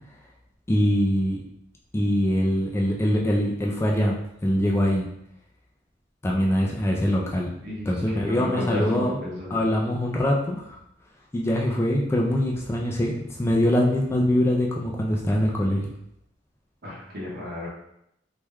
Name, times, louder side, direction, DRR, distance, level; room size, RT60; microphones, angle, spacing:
voice 1, 0.7-1.4 1.9-4.2 4.4-5.1 6.2-7.5 7.9-9.2 9.5-10.8 11.3-15.9, equal, 15° left, -2 dB, 0.3 m, -23 dB
voice 2, 7.6-9.6 16.8-17.7, left 2 dB, 60° right, -6 dB, 1.2 m, -33 dB
3.0 x 2.2 x 3.4 m, 0.78 s
head